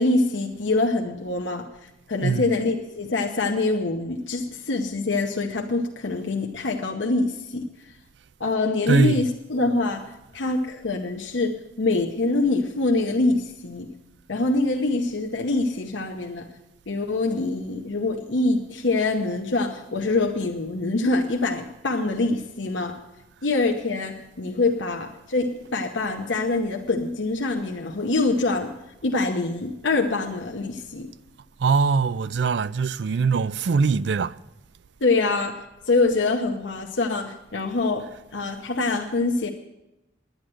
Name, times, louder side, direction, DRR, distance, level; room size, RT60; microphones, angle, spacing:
voice 1, 0.0-1.7 2.1-7.7 8.4-13.9 14.3-16.5 16.9-23.0 23.4-28.7 29.0-31.1 35.0-39.5, left 3 dB, 85° left, 0.9 m, -25 dB
voice 2, 8.9-9.3 31.6-34.3, right 5 dB, 70° right, 0.4 m, -22 dB
10.5 x 9.9 x 7.6 m
head